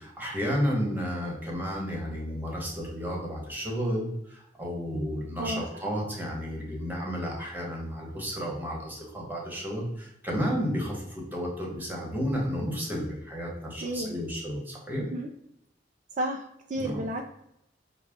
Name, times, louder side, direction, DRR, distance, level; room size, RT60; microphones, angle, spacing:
voice 1, 0.0-15.0 16.7-17.0, equal, 10° right, -2 dB, 1.1 m, -32 dB
voice 2, 13.8-14.1 15.0-15.3 16.2-17.2, right 1 dB, 45° right, 3 dB, 0.3 m, -32 dB
5.6 x 2.2 x 3.5 m, 0.80 s
head